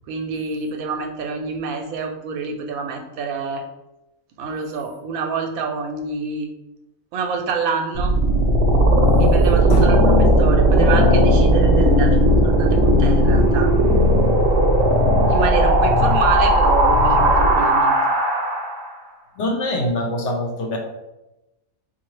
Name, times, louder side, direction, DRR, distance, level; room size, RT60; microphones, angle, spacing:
voice 1, 0.1-3.6 4.4-6.5 7.1-8.1 9.1-13.7 15.3-18.0, right 5 dB, 85° right, 4 dB, 1.0 m, -26 dB
sound 1, 7.9-18.9, equal, 60° right, 0.8 m, -16 dB
voice 2, 19.4-20.8, left 1 dB, 65° left, 1 dB, 0.9 m, -23 dB
3.8 x 2.6 x 3.1 m, 0.95 s
omnidirectional pair, 1.4 m